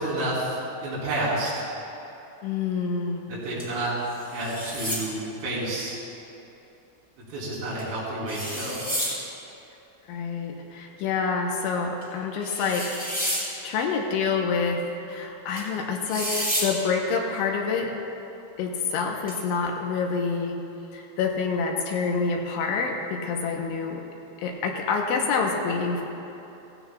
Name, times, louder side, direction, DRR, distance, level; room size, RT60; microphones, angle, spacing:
voice 1, 0.0-1.5 3.3-3.9 4.3-6.0 7.2-8.8, right 1 dB, 85° right, -7 dB, 6.1 m, -30 dB
voice 2, 2.4-3.3 10.1-13.0 13.6-17.9 18.6-20.6 20.9-24.0 24.4-26.0, left 5 dB, 80° left, 1 dB, 3.2 m, -27 dB
sound 1, 3.6-3.7 4.1-5.1 7.8-7.9 8.3-9.2 12.0-12.1 12.4-13.5 15.6-15.7 16.1-16.7 19.3-19.4, equal, 10° left, 0.5 m, -30 dB
17.0 x 15.5 x 2.4 m, 2.9 s
omnidirectional pair, 5.7 m